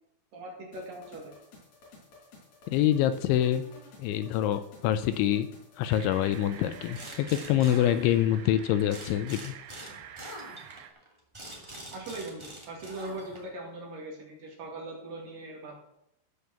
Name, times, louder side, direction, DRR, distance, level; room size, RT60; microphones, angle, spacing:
voice 1, 0.3-1.4 11.9-15.8, right 2 dB, 55° right, 0 dB, 3.3 m, -40 dB
sound 1, 0.7-7.2, left 2 dB, 50° left, 5.4 m, -53 dB
voice 2, 2.7-3.6 4.0-5.5 5.8-9.5, left 11 dB, 80° left, 11 dB, 2.9 m, -26 dB
sound 2, 5.9-10.9, right 10 dB, 75° right, 2.4 m, -48 dB
sound 3, 6.9-8.5 8.9-13.6, right 1 dB, 10° right, 1.2 m, -45 dB
14.5 x 5.7 x 7.0 m, 0.79 s
omnidirectional pair, 5.6 m